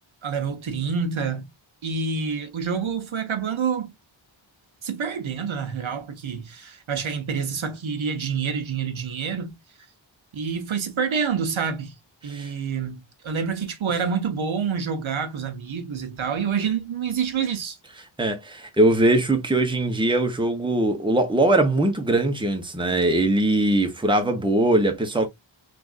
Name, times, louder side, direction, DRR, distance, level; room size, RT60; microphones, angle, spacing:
voice 1, 0.2-1.5 1.8-3.9 4.8-9.5 10.3-12.0 12.2-17.8, right 6 dB, 75° right, 0.8 m, -27 dB
voice 2, 18.2-25.3, right 1 dB, 10° right, 0.9 m, -21 dB
3.4 x 2.5 x 2.4 m
wide cardioid pair, 85°, 48 cm